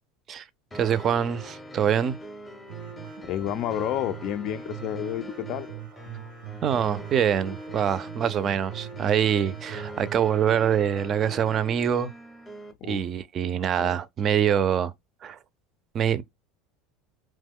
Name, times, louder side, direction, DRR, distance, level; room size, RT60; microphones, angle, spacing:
sound 1, 0.7-12.7, equal, 10° left, 0.6 m, -42 dB
voice 1, 0.7-2.2 6.6-12.1 12.9-14.9 15.2-15.4 15.9-16.2, right 9 dB, 35° right, 0.4 m, -24 dB
sound 2, 2.7-10.7, right 13 dB, 90° right, 0.5 m, -42 dB
voice 2, 3.2-5.7 12.8-13.0 13.8-13.9, left 11 dB, 50° left, 0.4 m, -30 dB
3.0 x 2.2 x 3.5 m
supercardioid pair, 125°, 0 cm